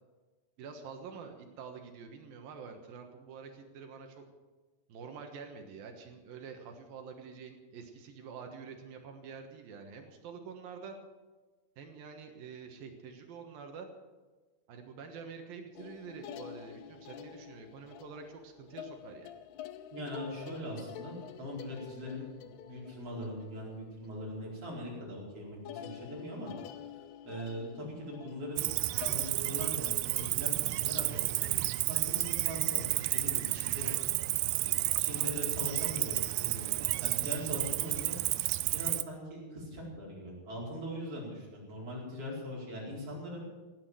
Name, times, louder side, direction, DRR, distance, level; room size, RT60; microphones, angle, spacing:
voice 1, 0.6-4.2 4.9-11.0 11.8-13.9 14.7-19.3 34.2-35.0, right 5 dB, 65° right, 5 dB, 2.9 m, -47 dB
sound 1, 15.7-24.6 24.9-25.2 25.6-29.3, left 10 dB, 80° left, 2.7 m, -48 dB
voice 2, 19.9-26.5 27.2-28.7 29.0-32.8 33.1-34.1 35.0-38.2 38.7-43.4, equal, 35° right, -4 dB, 5.5 m, -41 dB
Cricket, 28.6-39.0, right 18 dB, 80° right, 2.6 m, -31 dB
17.5 x 10.0 x 7.7 m, 1.3 s
omnidirectional pair, 4.8 m